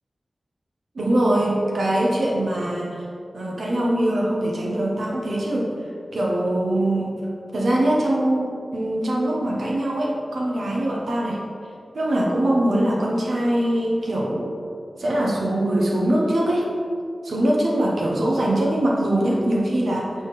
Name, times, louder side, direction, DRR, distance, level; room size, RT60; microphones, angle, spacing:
voice 1, 0.9-3.0 3.3-5.7 6.1-7.3 7.5-11.4 11.9-14.5 15.0-16.7 17.2-20.1, right 1 dB, 80° right, -3 dB, 1.0 m, -22 dB
8.6 x 3.6 x 4.0 m, 2.4 s
wide cardioid pair, 85°, 0 cm